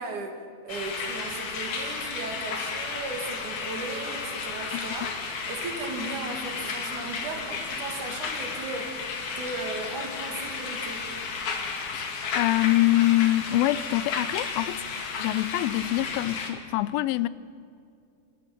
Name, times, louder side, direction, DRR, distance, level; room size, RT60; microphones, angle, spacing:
voice 1, 0.0-5.1 5.5-9.1 9.4-11.2, right 3 dB, 60° right, 3.6 m, -36 dB
sound 1, 0.7-16.5, left 4 dB, 60° left, 3.4 m, -33 dB
voice 2, 12.3-17.3, left 16 dB, 90° left, 2.5 m, -25 dB
28.0 x 13.0 x 7.5 m
omnidirectional pair, 4.1 m